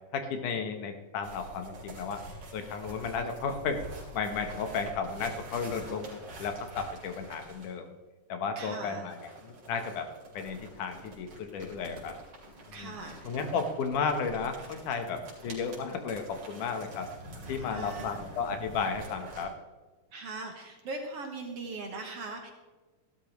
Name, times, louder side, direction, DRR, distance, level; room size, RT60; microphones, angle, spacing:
voice 1, 0.1-2.2 2.5-3.8 4.1-7.9 8.3-10.1 10.3-12.1 12.8-12.9 13.2-17.1 17.5-19.5, left 5 dB, 80° left, 6 dB, 2.6 m, -33 dB
sound 1, 1.2-7.8 9.0-19.4, right 1 dB, 45° right, 3.3 m, -46 dB
voice 2, 8.6-9.1 12.7-13.4 17.5-18.2 20.1-22.5, right 3 dB, 60° right, 3 dB, 1.9 m, -40 dB
15.5 x 12.0 x 3.1 m, 1.3 s
omnidirectional pair, 3.6 m